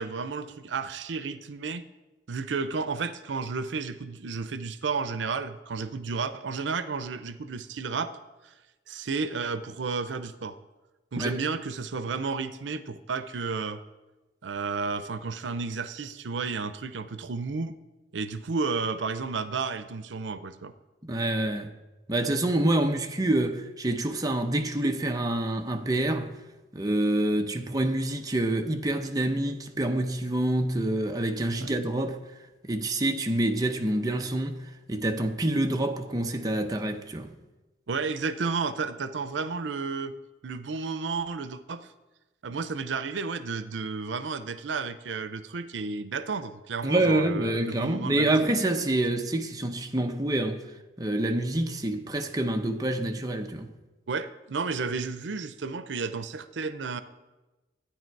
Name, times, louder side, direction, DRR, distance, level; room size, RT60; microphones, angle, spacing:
voice 1, 0.0-1.9 2.3-8.1 8.9-10.6 11.1-13.8 14.4-17.8 18.1-20.7 31.6-31.7 37.9-40.1 40.4-41.9 42.4-48.4 54.1-57.0, right 4 dB, 85° right, 0.6 m, -32 dB
voice 2, 21.0-21.7 22.1-26.3 26.7-37.3 46.8-50.6 51.0-53.7, right 1 dB, 20° right, 0.7 m, -27 dB
12.5 x 9.4 x 4.6 m
head